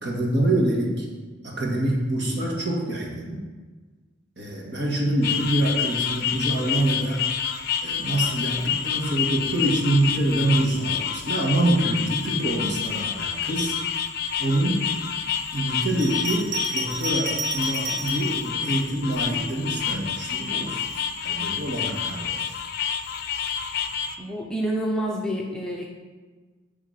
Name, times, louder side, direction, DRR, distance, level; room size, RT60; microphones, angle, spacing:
voice 1, 0.0-1.1 1.4-3.4 4.4-7.2 7.8-13.8 14.4-14.9 15.5-22.4, right 1 dB, 55° right, -3 dB, 1.9 m, -25 dB
sound 1, 5.2-24.2, left 8 dB, 50° left, 0.5 m, -28 dB
Bell, 15.9-18.3 19.1-20.0, right 5 dB, 80° right, 0.9 m, -33 dB
voice 2, 24.2-25.9, right 1 dB, 5° left, -3 dB, 0.7 m, -28 dB
9.9 x 3.7 x 6.5 m, 1.4 s
head